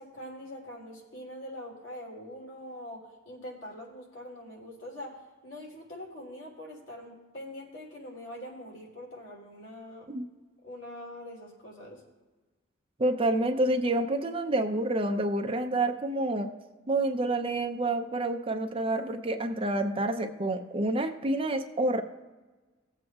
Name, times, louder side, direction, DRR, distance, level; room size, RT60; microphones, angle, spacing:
voice 1, 0.0-10.1 10.6-12.0, left 1 dB, 70° left, -3 dB, 3.1 m, -43 dB
voice 2, 13.0-16.5 16.9-22.0, right 2 dB, 25° right, 6 dB, 0.6 m, -28 dB
18.5 x 7.8 x 2.4 m, 1.2 s
head